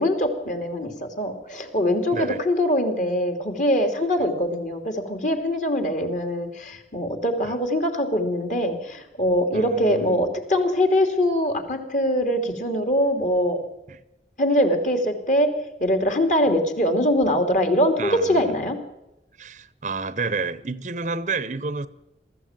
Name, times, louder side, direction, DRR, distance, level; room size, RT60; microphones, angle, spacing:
voice 1, 0.0-13.6 14.4-15.5 15.8-18.8, equal, 45° left, 3.1 m, -23 dB
voice 2, 9.5-10.2 13.9-14.0 18.0-18.5 19.4-21.9, right 4 dB, 45° right, 0.7 m, -30 dB
22.5 x 14.5 x 9.1 m
head